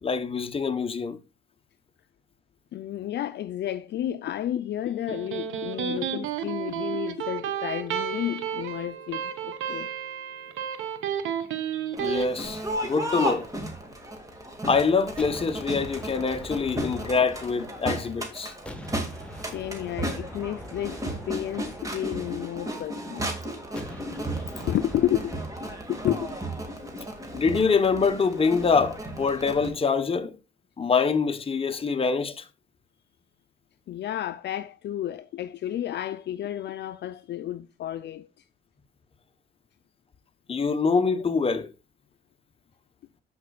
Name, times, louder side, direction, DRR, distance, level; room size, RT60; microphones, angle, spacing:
voice 1, 0.0-1.2 12.0-13.5 14.7-18.5 27.3-30.4 30.8-32.4 40.5-41.7, left 5 dB, 30° left, 0.9 m, -25 dB
voice 2, 2.7-9.9 19.5-21.0 21.3-23.3 24.7-25.4 25.9-26.4 33.9-38.3, left 12 dB, 60° left, 0.4 m, -31 dB
Electric guitar, 4.9-12.3, right 8 dB, 85° right, 1.0 m, -32 dB
Crowd, 11.9-29.7, right 1 dB, 15° right, 2.0 m, -34 dB
sound 1, 15.2-18.2 18.7-22.9 23.8-25.9, left 1 dB, 5° left, 1.3 m, -43 dB
13.5 x 5.1 x 2.3 m
cardioid pair, 90°, 20 cm